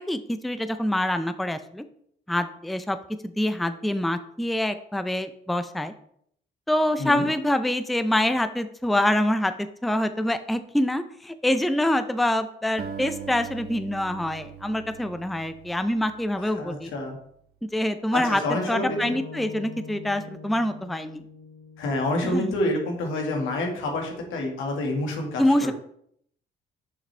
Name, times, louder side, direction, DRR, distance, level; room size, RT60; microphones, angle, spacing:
voice 1, 0.0-1.8 2.3-3.0 3.2-5.9 6.7-16.9 17.6-18.4 18.7-21.2 22.2-22.5 25.4-25.7, left 1 dB, ahead, 10 dB, 0.5 m, -25 dB
Acoustic guitar, 12.8-17.2, right 7 dB, 55° right, 1.2 m, -41 dB
voice 2, 16.4-17.2 18.1-19.2 21.8-25.7, left 2 dB, 90° left, 2 dB, 1.7 m, -28 dB
sound 1, 18.9-23.1, left 4 dB, 40° left, 2.1 m, -43 dB
6.8 x 5.7 x 3.3 m, 0.67 s
cardioid pair, 90°, 20 cm